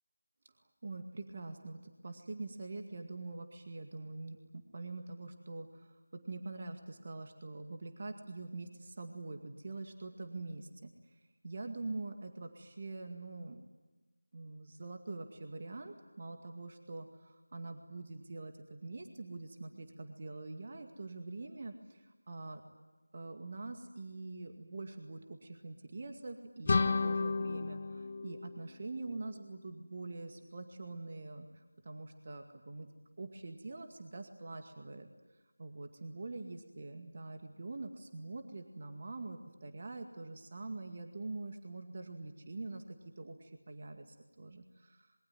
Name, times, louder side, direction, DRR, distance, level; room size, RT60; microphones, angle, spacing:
voice 1, 0.8-11.2 11.4-13.6 14.3-22.6 23.1-32.9 33.2-35.1 35.6-45.1, right 3 dB, 35° right, 5 dB, 2.1 m, -45 dB
sound 1, 26.6-29.4, left 4 dB, 30° left, 0.9 m, -33 dB
26.5 x 23.0 x 9.3 m, 1.2 s
figure-of-eight pair, 170°, 0 cm